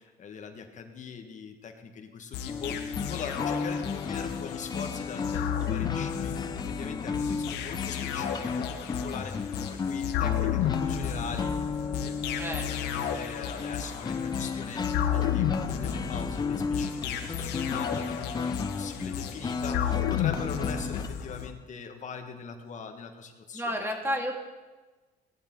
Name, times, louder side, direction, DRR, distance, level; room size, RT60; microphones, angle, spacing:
voice 1, 0.0-23.8, left 5 dB, 45° left, 5 dB, 1.6 m, -41 dB
sound 1, 2.3-21.5, left 9 dB, 90° left, 1.1 m, -33 dB
sound 2, 2.5-21.1, left 5 dB, 25° left, 0.6 m, -34 dB
voice 2, 12.4-12.7 23.5-24.4, equal, 15° right, 2 dB, 2.2 m, -31 dB
17.5 x 12.0 x 3.9 m, 1.3 s
cardioid pair, 110°, 17 cm